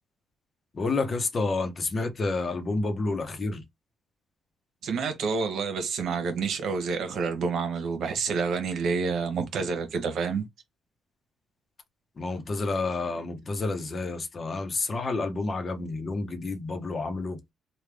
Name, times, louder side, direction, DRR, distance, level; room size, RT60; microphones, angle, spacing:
voice 1, 0.7-3.6 12.2-17.4, left 3 dB, 40° left, 0.8 m, -29 dB
voice 2, 4.8-10.4, right 5 dB, 70° right, 1.0 m, -28 dB
3.3 x 2.3 x 3.4 m
cardioid pair, 90°, 0 cm